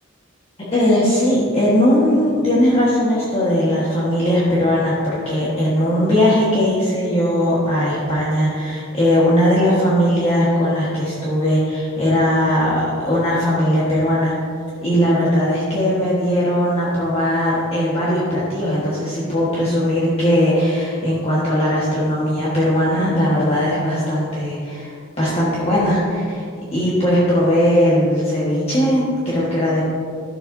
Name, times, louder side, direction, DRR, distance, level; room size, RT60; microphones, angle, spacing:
voice 1, 0.7-14.3 14.8-26.4 26.7-29.9, equal, 30° left, -8 dB, 1.4 m, -19 dB
12.0 x 7.6 x 2.7 m, 2.3 s
head